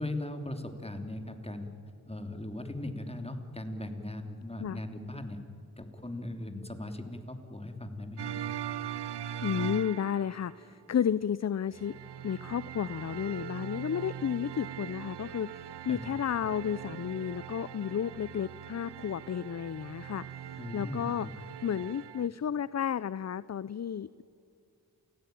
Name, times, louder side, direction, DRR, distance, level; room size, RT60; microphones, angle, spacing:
voice 1, 0.0-1.7 2.1-5.4 5.8-8.4 15.9-16.1 20.6-21.3, left 1 dB, 15° left, 6 dB, 3.1 m, -39 dB
sound 1, 8.2-10.6 11.7-22.3, right 10 dB, 90° right, 0.6 m, -41 dB
voice 2, 9.4-11.9 12.2-21.3 21.6-24.2, left 8 dB, 45° left, 18 dB, 0.5 m, -32 dB
28.5 x 16.5 x 9.4 m, 2.5 s
cardioid pair, 45°, 40 cm